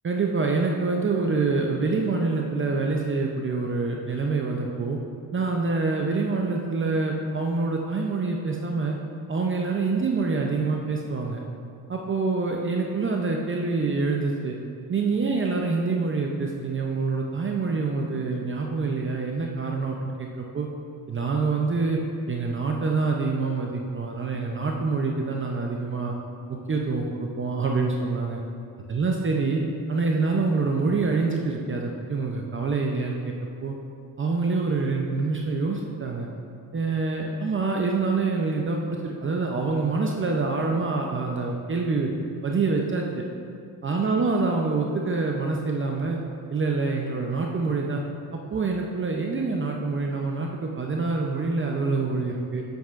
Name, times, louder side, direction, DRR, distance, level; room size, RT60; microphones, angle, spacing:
voice 1, 0.0-5.0 5.3-9.0 9.3-11.4 11.9-14.6 14.9-20.7 21.1-22.0 22.3-26.1 26.5-28.4 28.9-29.6 29.9-33.3 33.6-33.7 34.2-36.3 36.7-42.1 42.4-43.2 43.8-46.2 46.5-48.0 48.5-52.6, right 3 dB, 30° right, 0 dB, 0.6 m, -26 dB
7.9 x 7.6 x 2.5 m, 2.4 s
cardioid pair, 85°, 40 cm